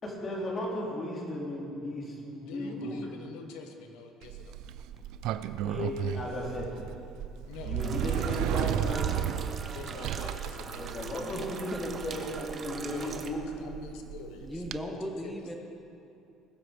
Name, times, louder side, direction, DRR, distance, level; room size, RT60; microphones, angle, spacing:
voice 1, 0.0-3.0 5.6-6.7 7.6-9.1 10.8-13.4, left 1 dB, 30° left, -3 dB, 3.1 m, -35 dB
voice 2, 2.4-4.6 7.5-8.4 9.7-10.9 12.8-13.3 13.6-15.4, left 5 dB, 85° left, 5 dB, 1.4 m, -45 dB
Sliding door, 4.2-14.8, right 10 dB, 70° right, 0.4 m, -34 dB
sound 1, 7.8-13.3, right 5 dB, 30° right, 0.9 m, -42 dB
voice 3, 11.3-11.8 14.4-15.6, equal, 5° left, 1 dB, 0.9 m, -38 dB
20.5 x 7.9 x 5.1 m, 2.6 s
cardioid pair, 145°, 0 cm